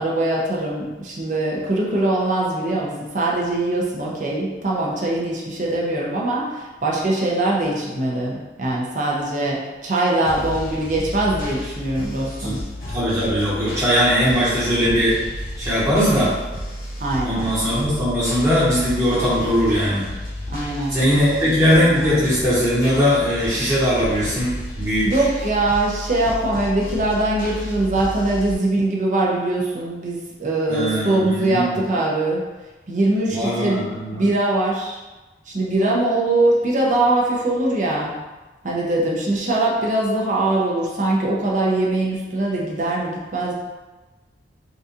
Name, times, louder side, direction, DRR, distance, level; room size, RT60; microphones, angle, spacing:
voice 1, 0.0-12.6 17.0-17.5 20.5-21.0 21.2-21.4 25.0-32.4 32.9-33.8 34.1-35.0 35.5-38.1 38.6-43.5, right 2 dB, 45° right, -3 dB, 0.6 m, -22 dB
sound 1, 10.2-28.5, left 1 dB, 50° left, 0.7 m, -32 dB
voice 2, 12.9-15.1 15.6-16.3 17.2-20.1 20.9-25.1 30.7-31.8 33.3-34.3, equal, 15° right, -11 dB, 1.3 m, -20 dB
3.8 x 2.5 x 2.7 m, 1.2 s
head